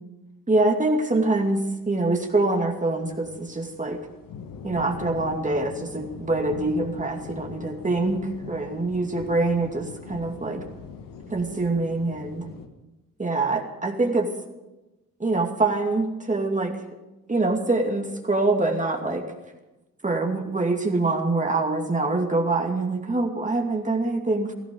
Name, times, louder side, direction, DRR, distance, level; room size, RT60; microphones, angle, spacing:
voice 1, 0.5-4.0 4.6-8.2 8.5-10.6 11.3-12.5 13.2-14.3 15.2-16.8 17.3-19.2 20.0-24.5, right 2 dB, 20° right, 3 dB, 2.4 m, -24 dB
sound 1, 2.0-12.7, left 6 dB, 70° left, 1.6 m, -42 dB
17.5 x 14.0 x 5.4 m, 1.0 s
supercardioid pair, 65°, 34 cm